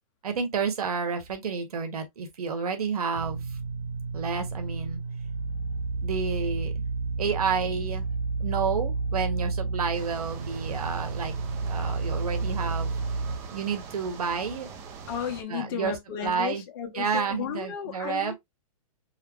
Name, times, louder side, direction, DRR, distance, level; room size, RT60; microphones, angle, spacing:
voice 1, 0.2-3.6 4.1-5.0 6.0-6.9 7.2-8.0 8.4-11.3 11.7-12.9 13.5-14.7 15.5-15.9 16.2-16.6 16.9-18.3, right 6 dB, 90° right, 1.7 m, -30 dB
sound 1, 3.1-13.4, right 4 dB, 60° right, 1.1 m, -31 dB
sound 2, 9.9-15.4, right 5 dB, 15° right, 0.4 m, -43 dB
voice 2, 15.1-18.3, left 9 dB, 35° left, 1.4 m, -34 dB
4.9 x 2.2 x 4.6 m
hypercardioid pair, 170°, 19 cm